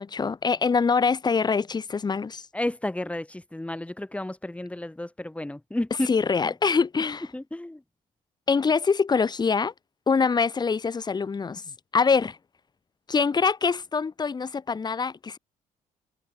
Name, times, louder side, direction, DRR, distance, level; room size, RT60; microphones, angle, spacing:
voice 1, 0.0-2.4 6.1-7.3 8.5-9.7 10.1-11.6 11.9-12.4 13.1-15.4, left 5 dB, 30° left, 0.8 m, -24 dB
voice 2, 2.5-6.1 7.3-7.8, left 1 dB, 10° left, 1.6 m, -32 dB
supercardioid pair, 70°, 15 cm